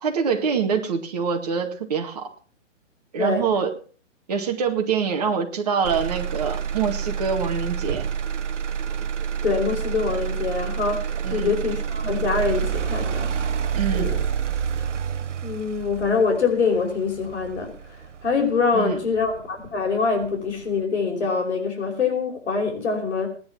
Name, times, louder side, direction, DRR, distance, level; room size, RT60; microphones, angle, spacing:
voice 1, 0.0-2.3 3.1-3.7 4.3-8.0 11.2-11.5 13.7-14.1 18.7-19.0, right 6 dB, 30° right, 3 dB, 2.0 m, -25 dB
voice 2, 3.2-3.5 9.4-13.3 13.9-14.2 15.4-17.7 18.2-23.3, left 4 dB, 60° left, 1 dB, 5.1 m, -24 dB
Motor vehicle (road), 5.8-19.9 20.3-20.8, right 8 dB, 70° right, 1.0 m, -28 dB
17.0 x 10.5 x 5.9 m, 0.41 s
hypercardioid pair, 180°, 38 cm